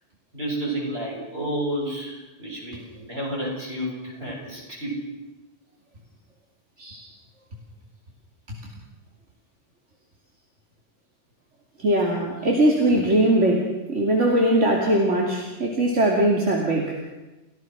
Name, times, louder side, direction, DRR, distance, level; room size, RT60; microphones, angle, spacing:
voice 1, 0.3-5.0, right 1 dB, 55° right, -3 dB, 7.7 m, -30 dB
voice 2, 11.8-16.9, right 1 dB, 80° right, -1 dB, 3.1 m, -21 dB
30.0 x 16.0 x 6.1 m, 1.1 s
omnidirectional pair, 1.2 m